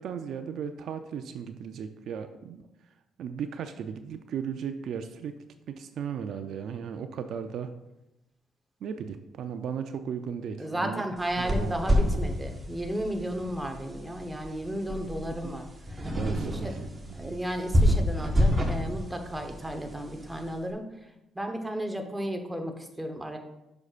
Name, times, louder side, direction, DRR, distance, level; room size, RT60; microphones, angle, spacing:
voice 1, 0.0-2.6 3.2-5.3 5.7-7.7 8.8-11.0 11.4-12.2 15.4-15.5 16.1-17.4, right 7 dB, 70° right, 8 dB, 0.5 m, -36 dB
voice 2, 10.6-15.7 16.0-16.1 16.5-16.8 17.1-20.9 21.3-23.4, right 1 dB, 10° right, 4 dB, 1.0 m, -34 dB
sound 1, 11.2-20.5, equal, 25° right, 1.2 m, -29 dB
9.5 x 6.3 x 2.5 m, 0.92 s
cardioid pair, 90°, 0 cm